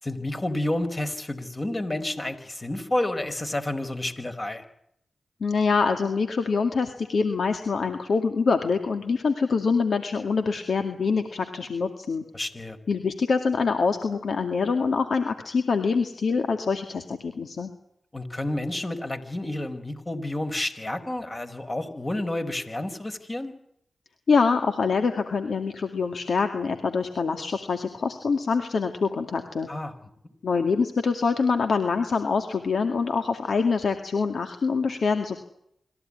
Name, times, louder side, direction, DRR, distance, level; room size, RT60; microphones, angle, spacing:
voice 1, 0.0-4.6 12.3-12.8 18.1-23.5 29.7-29.9, left 1 dB, 30° left, 7 dB, 4.7 m, -30 dB
voice 2, 5.4-12.2 12.9-17.7 24.3-29.7 30.4-35.4, left 4 dB, 70° left, 7 dB, 2.2 m, -25 dB
26.0 x 15.0 x 9.9 m, 0.74 s
cardioid pair, 45°, 0 cm